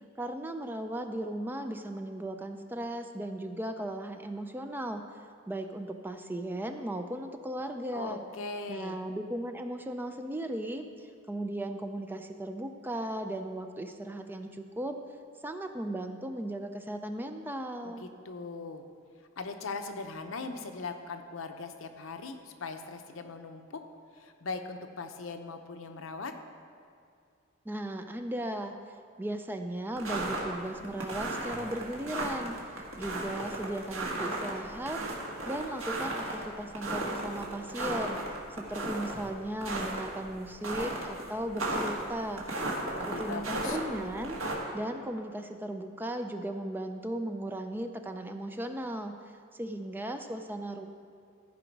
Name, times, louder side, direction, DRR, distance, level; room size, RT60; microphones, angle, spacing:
voice 1, 0.2-5.0 5.5-8.2 8.7-15.0 15.4-18.1 27.7-28.7 29.2-32.6 33.0-35.0 35.5-38.2 38.6-42.4 43.1-44.4 44.7-49.1 49.6-50.9, right 1 dB, 10° right, 6 dB, 0.4 m, -36 dB
voice 2, 7.9-9.0 17.8-18.8 19.4-23.8 24.2-26.3 42.9-43.8, left 4 dB, 70° left, 6 dB, 0.7 m, -40 dB
sound 1, 30.0-44.5, right 2 dB, 90° right, 1.7 m, -35 dB
14.5 x 5.1 x 4.6 m, 2.3 s
head